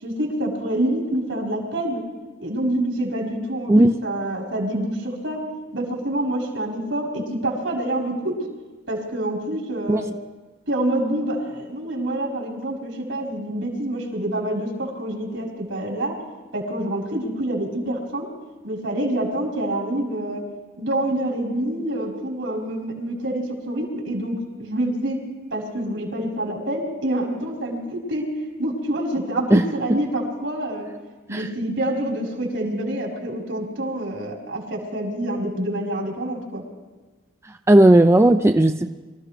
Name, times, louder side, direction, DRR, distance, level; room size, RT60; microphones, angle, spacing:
voice 1, 0.0-2.0 2.4-5.4 5.7-8.4 8.9-10.1 10.7-16.1 16.5-18.3 18.6-20.4 20.8-25.2 25.5-28.3 28.6-30.9 31.3-36.6, right 1 dB, 80° right, -2 dB, 4.4 m, -26 dB
voice 2, 37.7-38.9, right 1 dB, 15° right, 7 dB, 0.4 m, -14 dB
25.0 x 14.5 x 3.3 m, 1.3 s
head